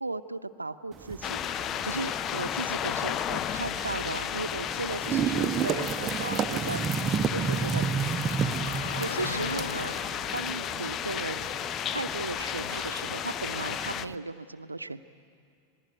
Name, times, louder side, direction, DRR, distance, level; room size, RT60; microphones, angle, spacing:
voice 1, 0.0-1.4 1.8-7.9 9.0-10.0 10.3-11.5 11.9-15.0, right 3 dB, 80° right, 11 dB, 0.8 m, -36 dB
sound 1, 0.9-14.2, right 7 dB, 25° right, 0.7 m, -33 dB
sound 2, 1.2-14.1, left 9 dB, 30° left, 0.5 m, -33 dB
Car passing by, 6.2-12.1, left 5 dB, 65° left, 1.2 m, -42 dB
26.5 x 20.5 x 9.2 m, 2.4 s
figure-of-eight pair, 90°, 0 cm